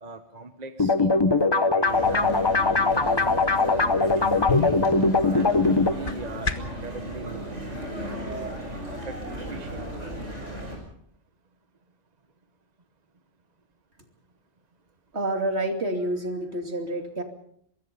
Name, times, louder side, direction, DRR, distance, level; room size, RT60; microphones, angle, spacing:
voice 1, 0.0-2.5 2.8-4.3 5.3-7.5 8.1-9.2 9.5-9.9, right 3 dB, 35° right, 8 dB, 1.3 m, -40 dB
sound 1, 0.8-5.9, left 3 dB, 25° left, 0.9 m, -21 dB
sound 2, 1.8-10.8, equal, 85° right, 7.3 m, -35 dB
sound 3, 4.4-6.9, left 5 dB, 45° left, 1.7 m, -32 dB
voice 2, 15.1-17.2, right 1 dB, 65° right, 4 dB, 3.2 m, -28 dB
24.0 x 22.5 x 5.5 m, 0.68 s
omnidirectional pair, 1.2 m